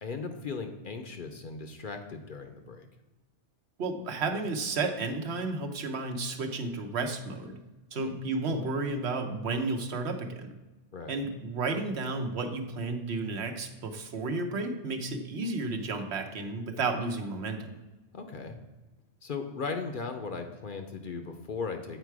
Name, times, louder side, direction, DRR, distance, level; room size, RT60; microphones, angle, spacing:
voice 1, 0.0-2.9 8.0-8.2 10.9-11.2 18.1-18.6 19.2-22.0, left 4 dB, 55° left, 5 dB, 0.8 m, -37 dB
voice 2, 3.8-7.6 7.9-10.5 11.1-17.7, right 3 dB, 70° right, 5 dB, 1.0 m, -32 dB
8.0 x 4.5 x 4.7 m, 1.1 s
omnidirectional pair, 1.2 m